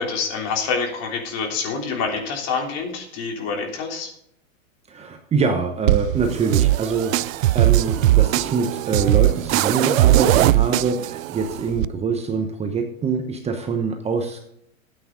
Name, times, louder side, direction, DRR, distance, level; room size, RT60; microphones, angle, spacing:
voice 1, 0.0-4.1, left 5 dB, 40° left, 2 dB, 3.3 m, -26 dB
voice 2, 4.9-14.5, right 5 dB, 15° right, 5 dB, 1.0 m, -24 dB
sound 1, 5.9-11.9, right 15 dB, 70° right, 0.6 m, -19 dB
13.5 x 8.6 x 3.8 m, 0.73 s
hypercardioid pair, 125°, 41 cm